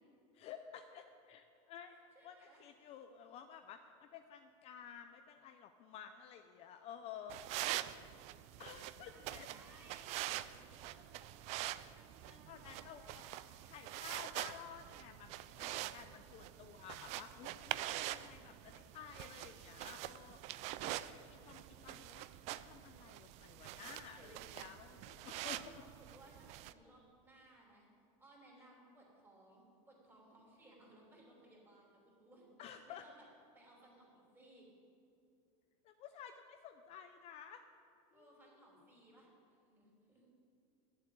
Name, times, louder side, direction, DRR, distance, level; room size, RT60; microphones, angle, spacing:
voice 1, 0.3-7.4 8.6-9.5 12.3-13.2 13.6-22.2 22.6-25.7 32.6-33.1 35.8-37.6 38.1-38.5, left 8 dB, 35° left, 7 dB, 0.5 m, -53 dB
voice 2, 1.9-2.6 7.2-8.0 8.4-8.8 9.1-11.3 11.9-13.5 19.6-20.1 21.4-22.0 24.0-24.6 25.2-27.9 28.2-32.5 32.8-33.3 33.5-34.7 38.1-39.3 39.6-40.3, right 1 dB, 10° right, -3 dB, 3.2 m, -63 dB
sound 1, 7.3-26.7, right 15 dB, 40° right, 0.4 m, -45 dB
11.5 x 7.5 x 8.7 m, 2.6 s
supercardioid pair, 155°, 18 cm